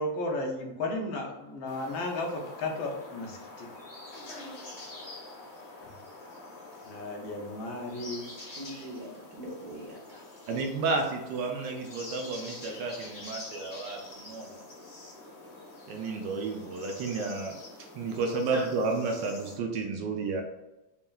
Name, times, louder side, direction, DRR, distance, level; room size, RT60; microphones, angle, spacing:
voice 1, 0.0-3.7 5.8-5.9 6.8-8.3, left 2 dB, 75° left, 0 dB, 1.5 m, -34 dB
sound 1, 1.7-19.6, left 2 dB, 30° left, 0.8 m, -46 dB
voice 2, 8.3-10.2 18.5-18.6, equal, 55° right, -4 dB, 1.0 m, -42 dB
voice 3, 10.5-14.6 15.9-17.5 17.9-20.4, right 3 dB, 75° right, 2 dB, 1.2 m, -31 dB
5.3 x 2.9 x 2.3 m, 0.98 s
omnidirectional pair, 2.2 m